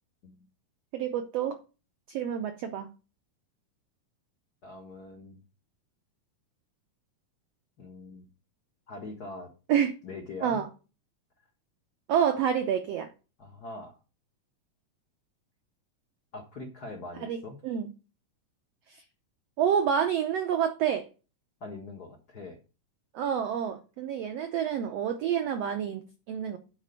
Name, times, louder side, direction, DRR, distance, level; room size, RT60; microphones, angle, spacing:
voice 1, 0.9-1.6 2.1-2.9 9.7-10.0 10.4-10.7 12.1-13.1 17.2-17.9 18.9-19.0 19.6-21.1 23.1-26.6, right 8 dB, 85° right, 1.4 m, -28 dB
voice 2, 4.6-5.4 7.8-8.3 8.9-9.5 10.0-10.6 13.4-14.0 16.3-17.6 21.6-22.6, left 2 dB, 85° left, 0.8 m, -42 dB
10.0 x 4.2 x 6.7 m
omnidirectional pair, 4.0 m